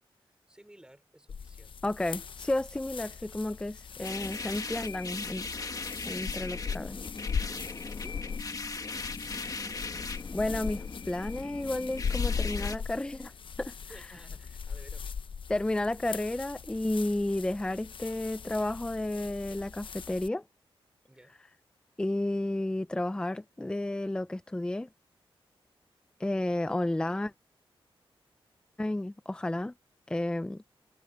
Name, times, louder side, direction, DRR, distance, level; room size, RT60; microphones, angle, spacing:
voice 1, 0.2-1.9 7.3-8.2 13.8-15.1 21.1-21.4, right 1 dB, 10° right, 4.4 m, -55 dB
sound 1, 1.3-20.3, left 6 dB, 60° left, 0.9 m, -39 dB
voice 2, 1.8-5.5 6.1-7.0 10.3-13.3 13.6-14.1 15.5-20.4 22.0-24.9 26.2-27.3 28.8-29.7 30.1-30.6, left 1 dB, 10° left, 0.4 m, -32 dB
sound 2, 4.0-12.8, left 4 dB, 40° left, 1.6 m, -39 dB
wide cardioid pair, 110°, 10 cm